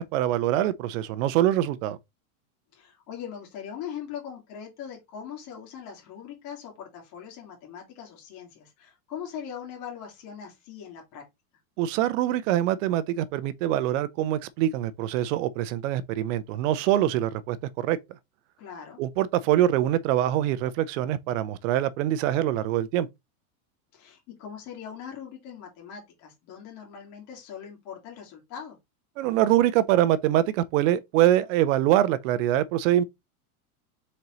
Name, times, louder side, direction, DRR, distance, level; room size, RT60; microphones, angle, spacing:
voice 1, 0.0-2.0 11.8-18.0 19.0-23.1 29.2-33.0, right 12 dB, 60° right, 0.7 m, -24 dB
voice 2, 2.7-11.2 18.6-19.0 23.9-28.8, left 8 dB, 50° left, 2.4 m, -41 dB
4.3 x 3.9 x 3.1 m
supercardioid pair, 120°, 44 cm